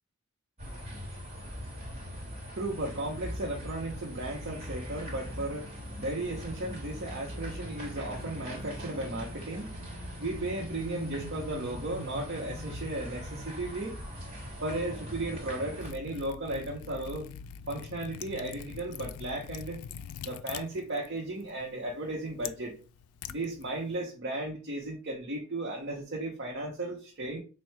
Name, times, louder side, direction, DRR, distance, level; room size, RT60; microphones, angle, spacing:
sound 1, 0.6-15.9, equal, 30° right, 1.3 m, -41 dB
voice 1, 1.8-9.8 10.2-14.0 14.6-17.3 17.7-19.8 20.2-22.7 23.3-27.4, right 2 dB, 50° right, 0.8 m, -35 dB
Bowed string instrument, 7.1-11.1, right 1 dB, 20° left, 0.8 m, -54 dB
Liquid, 15.8-24.0, left 8 dB, 80° left, 0.3 m, -44 dB
3.6 x 2.2 x 4.4 m
head